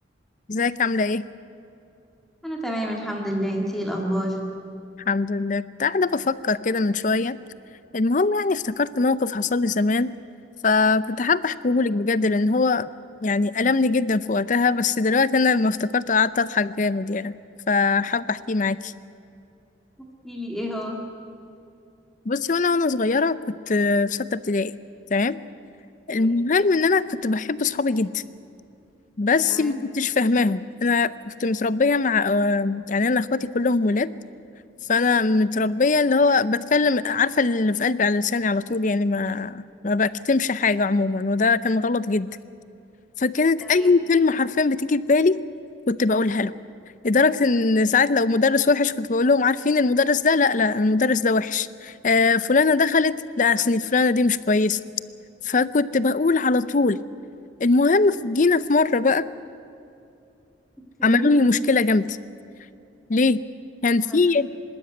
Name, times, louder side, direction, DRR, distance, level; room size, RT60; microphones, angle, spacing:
voice 1, 0.5-1.2 5.1-7.4 7.9-10.1 10.6-12.9 13.2-17.3 17.7-18.9 22.3-24.7 25.1-25.4 26.1-28.1 29.2-34.1 34.9-42.3 43.2-45.4 45.9-46.5 47.0-54.8 55.4-57.0 57.6-59.3 61.0-62.2 63.1-63.4 63.8-64.5, left 3 dB, 40° left, 16 dB, 0.5 m, -21 dB
voice 2, 2.4-4.4 20.0-21.0 26.1-26.4 29.5-29.8 43.6-43.9 61.0-61.3 64.1-64.2, equal, ahead, -1 dB, 2.1 m, -29 dB
25.0 x 13.0 x 9.3 m, 2.6 s
head